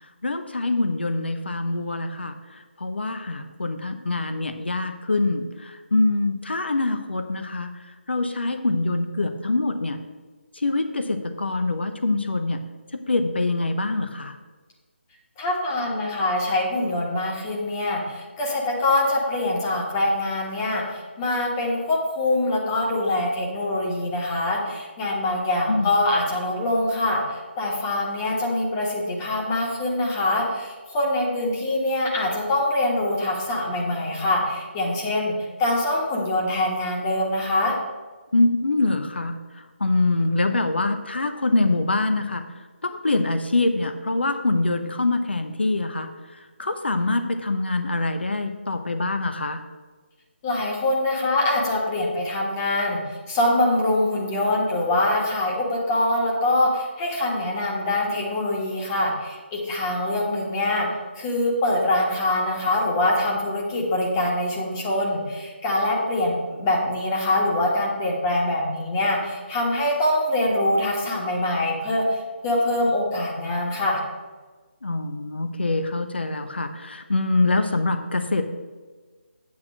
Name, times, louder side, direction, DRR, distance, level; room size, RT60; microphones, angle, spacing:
voice 1, 0.2-2.4 2.8-7.7 8.1-10.0 10.6-12.6 13.1-14.4 25.7-25.9 38.3-39.4 39.8-42.4 42.8-46.1 46.6-49.6 74.8-78.5, left 2 dB, 60° left, 7 dB, 0.9 m, -24 dB
voice 2, 15.4-35.3 35.6-37.8 50.4-53.0 53.3-60.9 61.1-72.0 72.4-74.0, left 1 dB, 20° left, -2 dB, 1.5 m, -24 dB
8.6 x 4.4 x 7.4 m, 1.3 s
figure-of-eight pair, 150°, 6 cm